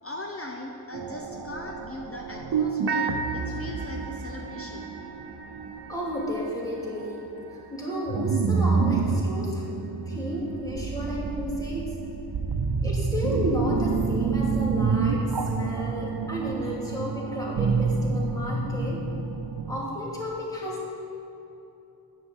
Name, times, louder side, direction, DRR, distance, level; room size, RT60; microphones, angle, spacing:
voice 1, 0.0-4.9, left 1 dB, 35° left, 1 dB, 0.9 m, -39 dB
sound 1, 0.9-7.4 8.0-19.8, right 4 dB, 85° right, 0.7 m, -28 dB
voice 2, 5.9-7.3 7.7-9.6 10.1-12.0 12.8-19.0 19.7-20.9, equal, 10° left, -6 dB, 2.8 m, -32 dB
10.0 x 6.5 x 8.0 m, 2.9 s
wide cardioid pair, 95°, 40 cm